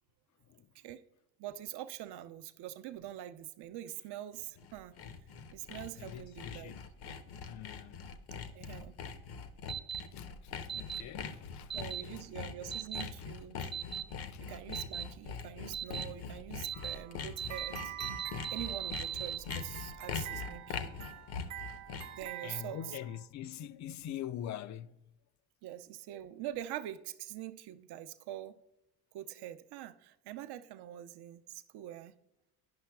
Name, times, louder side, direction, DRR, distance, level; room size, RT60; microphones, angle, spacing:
voice 1, 1.4-5.0 5.5-6.8 8.5-8.9 11.7-13.7 14.4-17.9 18.5-21.0 22.1-23.0 25.6-28.6 29.1-32.1, right 12 dB, 65° right, 0.6 m, -44 dB
Sawing, 4.4-22.2, left 6 dB, 60° left, 0.8 m, -43 dB
voice 2, 6.0-6.8 7.4-8.0 10.1-10.3 10.6-11.8 13.0-13.1 14.3-14.4 22.4-25.0, left 10 dB, 45° left, 0.4 m, -44 dB
sound 1, 9.7-10.0 10.7-11.0 11.7-12.0 12.7-13.0 13.7-14.0 14.7-15.0 15.7-16.0 16.6-16.9 17.4-17.7 18.0-19.4, right 9 dB, 10° right, 0.4 m, -38 dB
sound 2, 16.7-23.2, right 12 dB, 90° right, 0.9 m, -46 dB
10.5 x 5.7 x 2.3 m
supercardioid pair, 65°, 44 cm